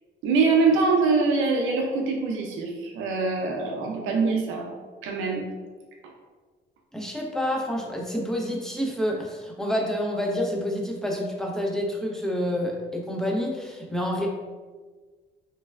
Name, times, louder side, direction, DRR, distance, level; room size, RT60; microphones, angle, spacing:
voice 1, 0.2-4.7 5.0-5.4, right 4 dB, 85° right, 1 dB, 0.5 m, -23 dB
voice 2, 6.9-14.3, equal, 5° left, -1 dB, 0.5 m, -28 dB
3.2 x 2.1 x 2.2 m, 1.4 s
cardioid pair, 90°, 20 cm